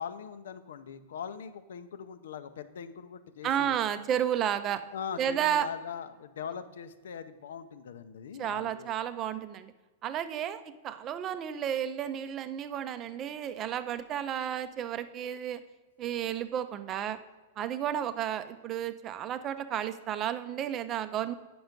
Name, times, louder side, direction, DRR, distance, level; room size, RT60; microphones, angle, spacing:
voice 1, 0.0-3.8 4.9-8.9, left 7 dB, 80° left, 12 dB, 0.7 m, -41 dB
voice 2, 3.4-4.8 5.2-5.7 8.4-9.7 10.0-15.6 16.0-17.2 17.6-21.3, right 10 dB, 25° right, 11 dB, 0.5 m, -32 dB
9.4 x 6.1 x 5.2 m, 1.2 s
supercardioid pair, 160°, 0 cm